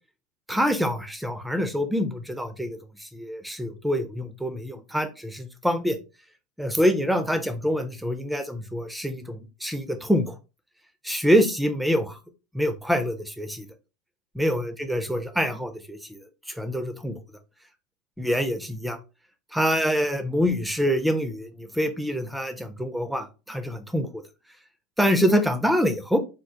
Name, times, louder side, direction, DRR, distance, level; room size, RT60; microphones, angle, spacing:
voice 1, 0.5-6.0 6.6-10.3 11.0-12.2 12.5-13.7 14.4-16.2 16.6-17.2 18.2-19.0 19.5-24.2 25.0-26.2, equal, ahead, 8 dB, 0.4 m, -25 dB
3.6 x 2.4 x 2.6 m, 0.30 s
supercardioid pair, 160°, 0 cm